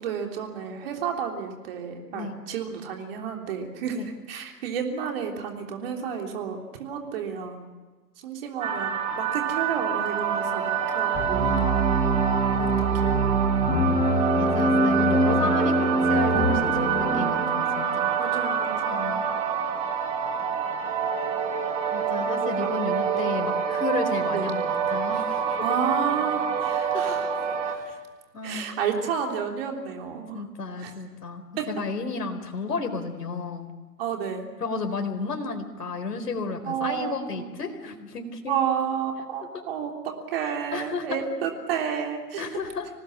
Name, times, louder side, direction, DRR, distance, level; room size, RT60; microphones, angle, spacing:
voice 1, 0.0-7.6 8.2-11.6 12.6-13.8 17.4-19.3 24.3-24.5 25.6-27.3 27.6-27.9 28.4-30.4 30.8-30.9 31.6-31.7 34.0-34.5 36.6-37.4 38.5-39.9 40.3-42.4, right 7 dB, 35° right, 2 dB, 3.3 m, -31 dB
sound 1, 8.6-27.8, right 7 dB, 10° right, 1.4 m, -27 dB
sound 2, 11.1-17.3, right 1 dB, 10° left, 3.2 m, -24 dB
voice 2, 11.4-12.2 14.3-18.1 18.9-19.2 21.9-25.7 26.9-27.2 28.3-28.7 30.3-33.7 34.6-38.6 39.5-39.6 40.7-41.2 42.4-42.9, left 4 dB, 70° left, 6 dB, 4.5 m, -32 dB
26.0 x 19.0 x 7.4 m, 1.3 s
hypercardioid pair, 150°, 49 cm